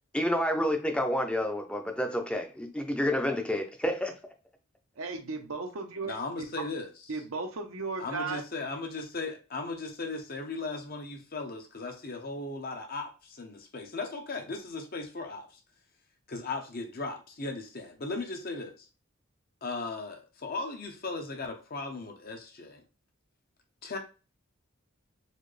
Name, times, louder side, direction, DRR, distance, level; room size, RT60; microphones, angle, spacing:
voice 1, 0.1-4.1, equal, 5° left, 0.5 m, -29 dB
voice 2, 5.0-6.5 7.1-8.4, right 4 dB, 85° right, 0.8 m, -35 dB
voice 3, 6.0-6.9 8.0-15.6 16.3-18.7 19.6-22.8 23.8-24.0, left 3 dB, 45° left, 0.7 m, -37 dB
4.1 x 2.2 x 3.2 m
head